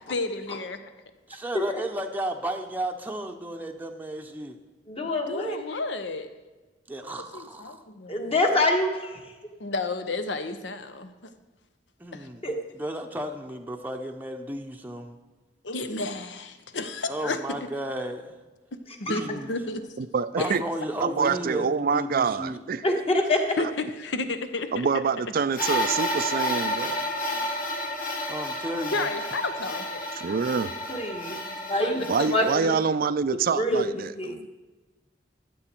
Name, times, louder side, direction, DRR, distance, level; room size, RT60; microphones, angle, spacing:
voice 1, 0.1-0.8 5.0-6.3 7.0-8.3 9.6-11.3 12.1-12.3 15.6-17.7 19.0-19.9 20.4-20.6 23.6-24.9 27.3-27.4 28.9-30.1 31.8-33.0, left 3 dB, 80° left, 9 dB, 0.9 m, -32 dB
voice 2, 1.3-4.6 6.9-7.8 12.0-12.4 12.7-15.1 17.1-18.3 19.1-19.5 20.3-22.6 28.3-29.1 31.2-31.4, right 1 dB, 10° right, 3 dB, 0.7 m, -33 dB
voice 3, 4.9-5.6 8.1-9.2 12.4-12.5 19.1-19.2 22.8-23.4 30.9-31.4 31.7-32.1 32.3-32.7 33.5-33.8 34.2-34.4, left 1 dB, 35° left, 2 dB, 1.4 m, -25 dB
voice 4, 20.0-20.6 21.0-22.8 24.7-27.0 30.2-30.7 32.1-34.5, right 5 dB, 55° right, 15 dB, 0.4 m, -26 dB
sound 1, 25.5-32.6, left 1 dB, 50° left, 1.7 m, -31 dB
13.0 x 7.9 x 4.5 m, 1.2 s
head